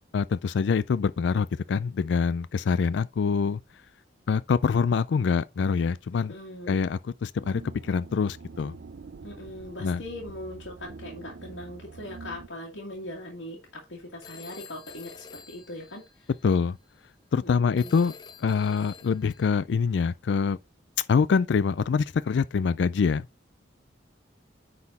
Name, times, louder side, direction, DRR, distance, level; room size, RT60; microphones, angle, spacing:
voice 1, 0.1-3.6 4.3-6.3 6.7-8.7 9.8-10.0 16.4-16.8 17.3-18.1 18.4-20.6 21.0-23.3, left 5 dB, 65° left, 0.4 m, -25 dB
voice 2, 6.1-6.8 9.2-16.3 17.4-17.9, left 1 dB, 85° left, 2.0 m, -40 dB
sound 1, 7.4-12.5, right 4 dB, 60° right, 0.5 m, -45 dB
Telephone, 14.2-16.6 17.8-19.5, left 5 dB, 25° left, 0.7 m, -48 dB
9.6 x 4.2 x 4.1 m
head